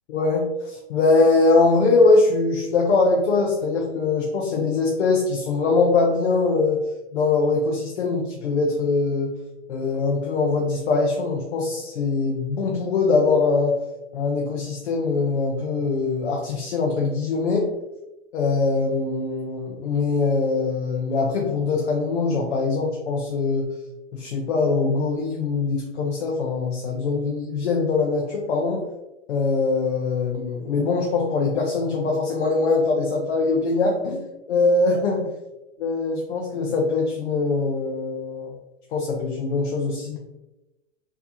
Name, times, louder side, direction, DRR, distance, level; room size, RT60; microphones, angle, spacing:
voice 1, 0.1-6.8 7.1-9.3 9.7-13.8 14.1-17.7 18.3-23.7 24.1-28.8 29.3-35.3 35.8-38.5 38.9-40.2, left 3 dB, 60° left, 0 dB, 0.8 m, -22 dB
4.2 x 2.8 x 2.8 m, 0.97 s
hypercardioid pair, 135°, 36 cm